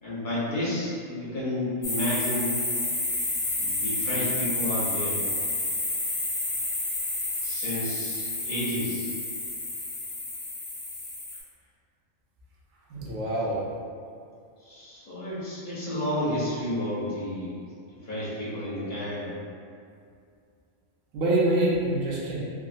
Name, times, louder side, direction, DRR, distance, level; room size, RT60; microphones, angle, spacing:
voice 1, 0.0-2.6 3.6-5.2 7.4-9.1 14.6-17.5 18.0-19.3, left 1 dB, 40° left, -10 dB, 0.9 m, -31 dB
sound 1, 1.8-11.4, left 2 dB, 75° left, 1.0 m, -30 dB
voice 2, 12.9-13.6 21.1-22.4, right 1 dB, 80° right, -5 dB, 1.0 m, -25 dB
3.5 x 2.1 x 2.4 m, 2.3 s
omnidirectional pair, 1.3 m